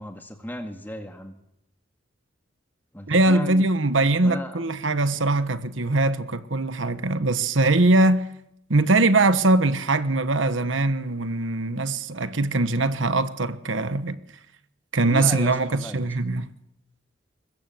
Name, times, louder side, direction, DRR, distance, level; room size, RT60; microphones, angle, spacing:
voice 1, 0.0-1.4 2.9-3.6 4.2-4.6 15.1-16.1, equal, 10° left, 2.0 m, -35 dB
voice 2, 3.1-8.3 8.7-14.2 14.9-16.5, right 2 dB, 80° right, 1.2 m, -22 dB
22.0 x 21.5 x 7.8 m
head